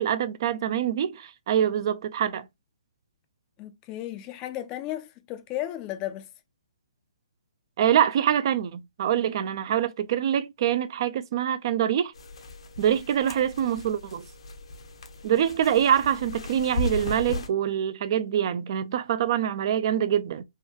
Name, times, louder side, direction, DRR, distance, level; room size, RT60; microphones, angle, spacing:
voice 1, 0.0-2.5 7.8-12.1 12.8-14.2 15.2-20.4, right 10 dB, 50° right, 0.4 m, -25 dB
voice 2, 3.6-6.3 15.3-15.4, left 13 dB, 25° left, 0.4 m, -34 dB
sound 1, 12.1-17.5, left 2 dB, 65° left, 0.7 m, -36 dB
3.4 x 2.2 x 2.8 m
hypercardioid pair, 135°, 3 cm